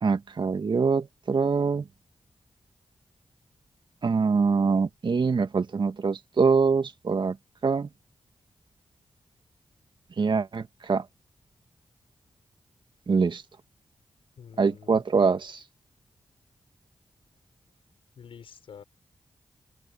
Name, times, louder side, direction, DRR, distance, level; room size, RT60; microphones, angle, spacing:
voice 1, 0.0-1.8 4.0-7.3 7.6-7.9 10.2-10.6 10.9-11.0 13.1-13.4 14.6-15.5, right 5 dB, 60° right, 1.9 m, -24 dB
voice 2, 14.4-15.3 18.2-18.8, left 7 dB, 85° left, 6.7 m, -47 dB
open air
cardioid pair, 40°, 9 cm